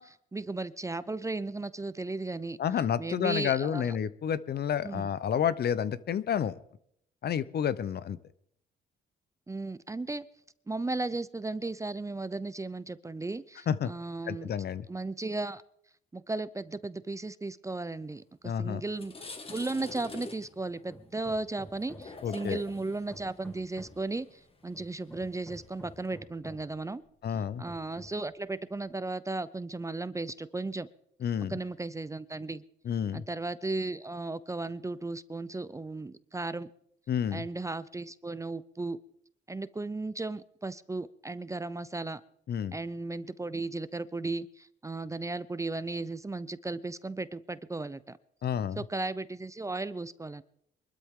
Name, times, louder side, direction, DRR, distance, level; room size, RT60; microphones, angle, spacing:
voice 1, 0.0-2.6 3.0-4.0 4.8-5.1 9.5-10.2 10.7-14.5 14.9-15.6 16.1-27.0 27.6-30.9 31.5-32.6 33.1-36.7 37.3-39.0 39.5-42.2 42.7-48.2 48.8-50.4, right 3 dB, 15° right, 16 dB, 0.5 m, -35 dB
voice 2, 2.6-6.6 7.2-8.2 13.7-13.9 14.3-14.9 18.4-18.8 22.2-22.6 27.2-27.6 31.2-31.6 32.8-33.2 37.1-37.5 42.5-42.8 48.4-48.8, left 8 dB, 55° left, 16 dB, 0.7 m, -30 dB
sound 1, 18.3-18.5 18.8-26.1, left 3 dB, 30° left, 1.9 m, -47 dB
Hammer, 20.9-22.3 22.7-24.1 24.7-26.8 27.3-28.3, equal, 5° left, 2.5 m, -50 dB
23.5 x 13.0 x 3.7 m, 0.72 s
cardioid pair, 90°, 20 cm